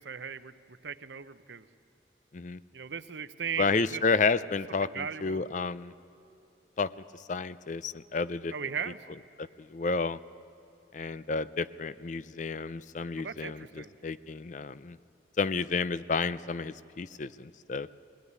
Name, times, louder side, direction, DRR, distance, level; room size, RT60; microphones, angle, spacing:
voice 1, 0.0-1.7 2.7-4.0 4.9-5.4 8.5-9.0 13.2-13.9, right 7 dB, 75° right, 12 dB, 0.8 m, -37 dB
voice 2, 3.6-5.9 6.8-6.9 7.3-8.5 9.4-10.2 10.9-15.0 15.4-17.9, left 4 dB, 40° left, 16 dB, 0.5 m, -31 dB
22.0 x 18.0 x 9.6 m, 2.9 s
head